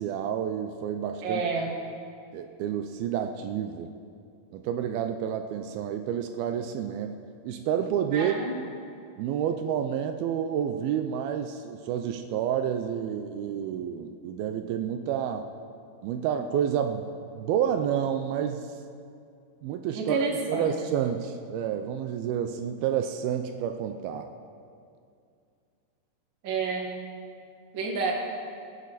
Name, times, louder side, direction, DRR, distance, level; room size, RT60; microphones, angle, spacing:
voice 1, 0.0-1.4 2.3-3.9 4.5-7.2 7.4-8.4 9.2-15.4 16.0-17.1 17.3-18.7 19.6-24.3, right 9 dB, 80° right, 6 dB, 2.4 m, -29 dB
voice 2, 1.2-1.7 8.1-8.6 19.9-20.7 26.4-27.0 27.7-28.1, right 4 dB, 45° right, -1 dB, 1.8 m, -29 dB
22.5 x 8.4 x 4.1 m, 2.4 s
omnidirectional pair, 4.4 m